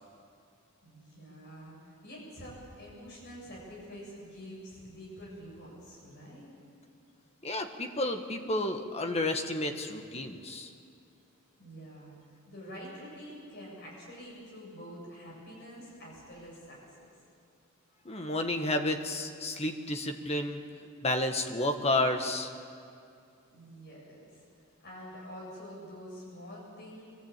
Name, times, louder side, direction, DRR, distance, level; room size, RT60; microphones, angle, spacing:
voice 1, 0.8-6.5 11.6-12.1 12.5-17.1 23.5-24.4 24.8-27.0, equal, 50° left, -4 dB, 7.8 m, -47 dB
voice 2, 7.4-10.7 18.0-20.6 21.0-22.5, left 2 dB, 30° left, 6 dB, 1.4 m, -31 dB
22.5 x 15.0 x 8.9 m, 2.4 s
head